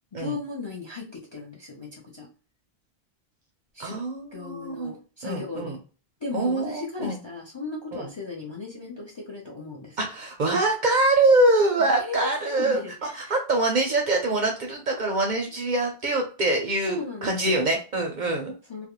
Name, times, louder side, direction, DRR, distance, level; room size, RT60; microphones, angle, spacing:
voice 1, 0.1-2.3 3.7-4.0 4.3-5.8 6.2-10.1 11.8-13.3 16.9-17.6 18.7-18.9, left 4 dB, 35° left, -2 dB, 0.4 m, -36 dB
voice 2, 3.8-4.9 5.2-5.8 6.3-7.2 7.9-8.1 10.0-18.5, right 2 dB, 60° right, 2 dB, 0.5 m, -24 dB
2.4 x 2.2 x 2.8 m, 0.35 s
omnidirectional pair, 1.1 m